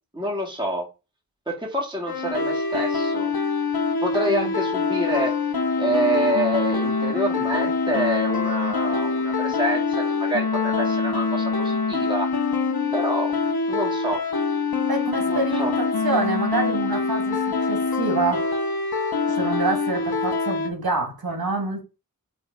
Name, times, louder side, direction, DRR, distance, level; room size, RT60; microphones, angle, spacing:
voice 1, 0.1-0.9 1.5-3.3 4.0-5.3 5.8-12.3 12.9-13.3 13.7-14.2 15.3-15.7, right 1 dB, 15° right, 2.3 m, -27 dB
sound 1, 2.1-20.7, left 4 dB, 85° left, 1.3 m, -24 dB
voice 2, 14.9-18.5 19.3-21.8, right 3 dB, 80° right, 2.4 m, -27 dB
6.0 x 3.5 x 5.9 m
wide cardioid pair, 75°, 36 cm